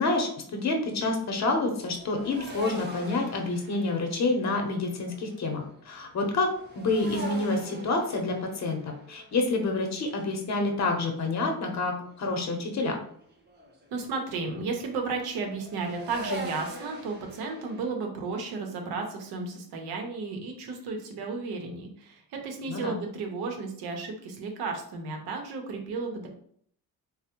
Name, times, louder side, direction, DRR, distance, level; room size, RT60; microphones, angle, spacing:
voice 1, 0.0-6.5 6.8-13.0 22.7-23.0, left 3 dB, 45° left, 3 dB, 0.7 m, -28 dB
sound 1, 0.8-12.2 12.5-17.9, equal, 30° right, 0.6 m, -43 dB
voice 2, 13.9-26.3, right 4 dB, 85° right, 3 dB, 0.7 m, -33 dB
3.2 x 2.1 x 2.9 m, 0.63 s
cardioid pair, 95°, 37 cm